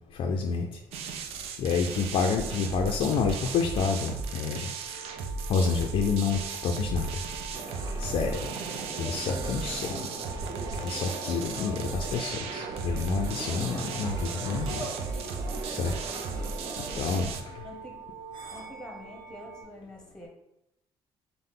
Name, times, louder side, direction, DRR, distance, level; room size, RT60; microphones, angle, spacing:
voice 1, 0.2-0.7 1.6-4.7 5.5-7.1 8.0-8.4 9.0-10.0 10.7-14.8 15.7-15.9 16.8-17.3, left 5 dB, 55° left, 3 dB, 0.4 m, -28 dB
sound 1, 0.9-17.4, right 4 dB, 85° right, 0.4 m, -36 dB
sound 2, 2.4-19.6, right 6 dB, 55° right, 1.2 m, -46 dB
sound 3, 7.5-17.3, right 3 dB, 35° right, 0.6 m, -40 dB
voice 2, 17.6-18.0 18.5-20.3, left 1 dB, 5° left, 0 dB, 0.8 m, -46 dB
5.4 x 2.0 x 3.7 m, 0.85 s
cardioid pair, 145°, 10 cm